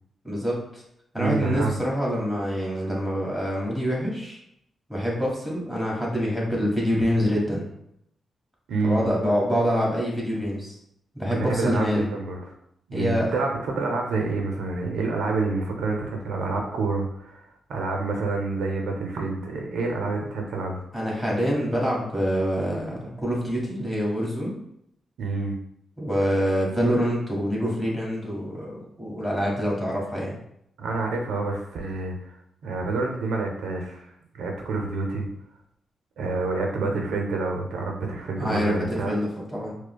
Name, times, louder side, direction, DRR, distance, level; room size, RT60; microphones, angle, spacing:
voice 1, 0.2-0.8 1.1-4.4 4.9-7.7 8.8-10.8 11.1-12.1 12.9-13.3 20.9-24.5 26.0-30.4 38.4-39.8, equal, 5° left, -4 dB, 1.4 m, -26 dB
voice 2, 1.2-1.8 8.7-9.0 11.2-12.5 12.9-20.8 25.2-25.5 30.8-32.4 32.6-34.1 34.3-35.3 36.2-39.1, right 3 dB, 85° right, 1 dB, 0.5 m, -28 dB
4.9 x 2.1 x 2.2 m, 0.74 s
cardioid pair, 75°, 0 cm